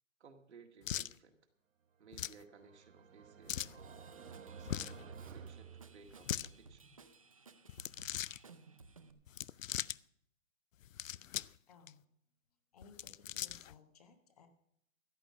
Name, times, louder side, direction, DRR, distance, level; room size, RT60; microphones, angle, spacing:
voice 1, 0.2-1.4 2.0-7.0, right 5 dB, 55° right, 5 dB, 1.9 m, -60 dB
sound 1, 0.8-1.1 2.1-2.4 3.5-3.8 4.6-5.0 6.1-6.5 7.7-8.4 9.3-10.0 10.8-11.6 11.9-12.0 12.8-13.7, left 11 dB, 75° left, 0.5 m, -40 dB
sound 2, 2.1-6.5, right 6 dB, 75° right, 1.2 m, -53 dB
Drum kit / Drum, 3.8-9.1, right 4 dB, 25° right, 0.5 m, -59 dB
voice 2, 11.7-12.0 12.7-14.5, left 4 dB, 30° left, 7 dB, 1.2 m, -60 dB
14.0 x 9.1 x 6.1 m, 0.72 s
hypercardioid pair, 165°, 40 cm